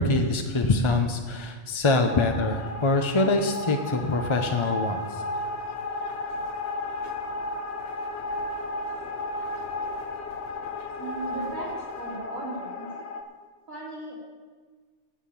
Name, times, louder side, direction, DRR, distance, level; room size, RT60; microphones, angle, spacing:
voice 1, 0.0-5.0, left 2 dB, 30° left, 5 dB, 0.6 m, -24 dB
sound 1, 2.1-13.2, left 2 dB, 55° left, 1.1 m, -33 dB
voice 2, 11.0-12.9 13.7-14.2, right 2 dB, 75° right, -3 dB, 3.4 m, -37 dB
13.5 x 5.8 x 8.5 m, 1.5 s
omnidirectional pair, 1.4 m